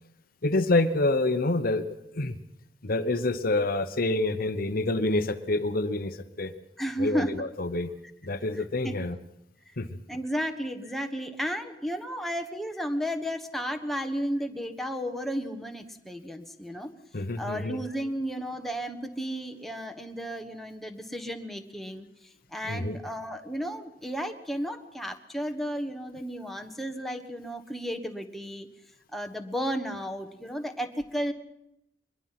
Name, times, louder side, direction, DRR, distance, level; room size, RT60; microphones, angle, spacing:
voice 1, 0.4-1.8 2.1-2.4 2.8-6.5 7.0-7.9 8.2-9.2 9.8-9.9 17.1-17.8 22.6-23.0, left 2 dB, 55° left, 10 dB, 1.1 m, -27 dB
voice 2, 6.8-7.3 8.5-8.9 9.7-9.8 10.1-16.9 17.4-28.7 29.1-31.3, equal, ahead, 5 dB, 1.4 m, -33 dB
23.0 x 21.5 x 6.0 m, 0.83 s
head